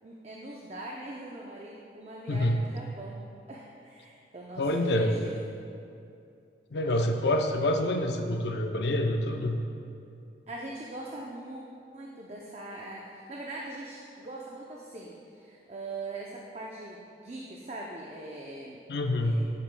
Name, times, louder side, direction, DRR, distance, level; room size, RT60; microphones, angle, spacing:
voice 1, 0.0-3.2 3.5-5.5 10.5-11.6 11.9-18.8 19.2-19.4, right 2 dB, 35° right, -3 dB, 0.6 m, -41 dB
voice 2, 2.3-2.6 4.6-5.1 6.7-9.6 18.9-19.4, left 1 dB, 75° left, 4 dB, 0.6 m, -27 dB
11.5 x 7.0 x 2.2 m, 2.6 s
head